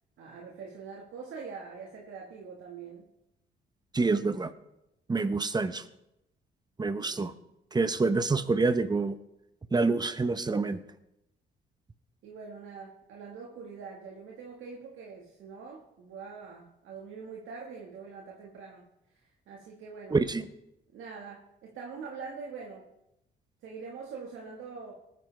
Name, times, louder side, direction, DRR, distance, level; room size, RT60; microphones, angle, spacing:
voice 1, 0.2-3.1 7.0-7.3 12.2-20.2 20.9-22.9 23.6-24.9, right 5 dB, 80° right, -1 dB, 1.7 m, -44 dB
voice 2, 3.9-4.5 5.1-5.8 6.8-7.3 7.7-9.1 9.7-10.8 20.1-20.4, right 3 dB, 20° right, 11 dB, 0.9 m, -27 dB
19.0 x 9.4 x 3.4 m, 0.88 s
cardioid pair, 90°, 20 cm